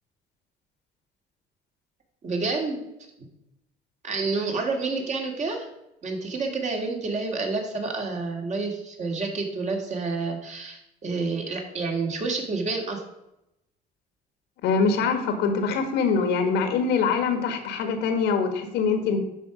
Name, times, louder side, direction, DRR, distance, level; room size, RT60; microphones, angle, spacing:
voice 1, 2.2-2.8 4.0-5.7 6.0-13.0, right 3 dB, 45° right, 2 dB, 2.2 m, -29 dB
voice 2, 14.6-19.2, left 5 dB, 90° left, 7 dB, 1.5 m, -24 dB
11.5 x 4.7 x 5.0 m, 0.88 s
cardioid pair, 110°, 17 cm